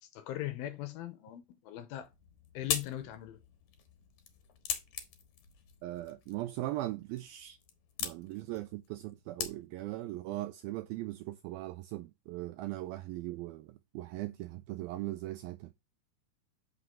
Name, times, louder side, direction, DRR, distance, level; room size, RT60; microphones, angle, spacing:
voice 1, 0.0-2.1 2.5-3.4, left 14 dB, 80° left, 2.3 m, -40 dB
sound 1, 2.0-10.0, left 8 dB, 60° left, 2.2 m, -42 dB
voice 2, 5.8-7.6 8.0-15.7, right 16 dB, 85° right, 2.1 m, -39 dB
7.9 x 5.8 x 3.6 m
omnidirectional pair, 4.8 m